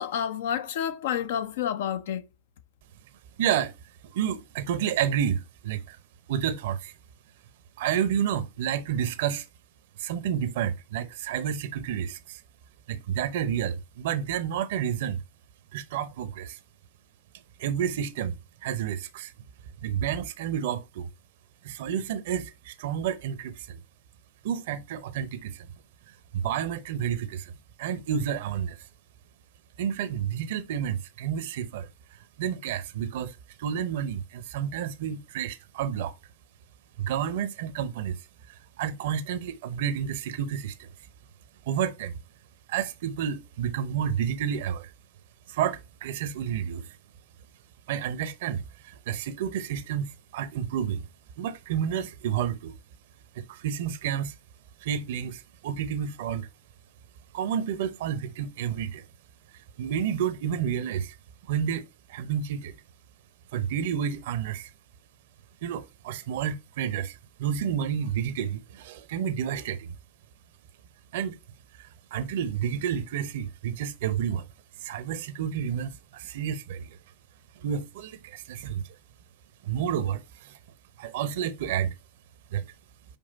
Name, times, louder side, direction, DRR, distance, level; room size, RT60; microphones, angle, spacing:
voice 1, 0.0-2.3, left 9 dB, 60° left, 0.7 m, -29 dB
voice 2, 3.4-3.7 4.0-6.0 6.3-6.9 7.8-9.5 10.0-12.4 12.9-15.2 15.7-16.6 17.6-18.4 18.6-19.3 19.8-21.1 21.6-23.8 24.4-25.7 26.3-27.5 27.8-28.8 29.8-31.9 32.4-36.1 37.0-38.2 38.5-40.9 41.7-42.2 42.7-44.9 45.5-46.9 47.9-51.0 51.4-52.7 53.3-54.3 54.8-56.5 57.3-59.0 59.8-61.2 61.5-62.7 63.5-64.7 65.6-69.9 71.1-71.4 71.8-74.5 74.8-77.0 77.6-78.9 79.6-80.6 81.0-81.9 82.5-82.7, right 9 dB, 55° right, 0.8 m, -30 dB
5.3 x 5.0 x 4.2 m
figure-of-eight pair, 95°, 0 cm